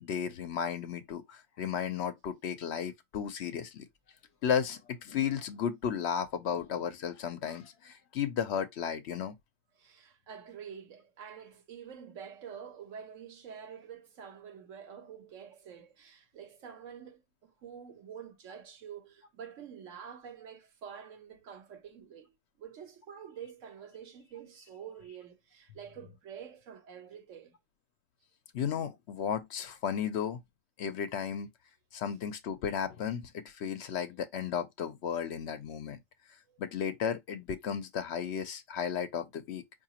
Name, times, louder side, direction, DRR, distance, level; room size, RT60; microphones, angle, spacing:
voice 1, 0.0-3.9 4.4-9.4 28.5-30.4 30.8-31.5 31.9-36.0 36.6-39.6, left 8 dB, 65° left, 0.8 m, -34 dB
voice 2, 9.8-22.3 22.6-27.5 36.5-36.6, right 7 dB, 75° right, 1.2 m, -47 dB
4.8 x 2.6 x 2.8 m
omnidirectional pair, 1.3 m